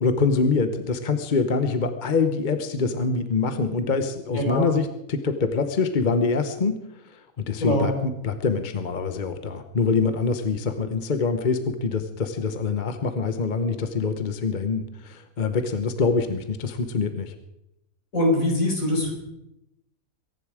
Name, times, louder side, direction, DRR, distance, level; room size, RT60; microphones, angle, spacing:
voice 1, 0.0-6.8 7.5-17.3, left 4 dB, 40° left, 9 dB, 0.9 m, -25 dB
voice 2, 4.3-4.7 7.6-7.9 18.1-19.1, left 1 dB, 65° left, 0 dB, 4.8 m, -22 dB
23.0 x 10.5 x 4.9 m, 0.88 s
omnidirectional pair, 1.5 m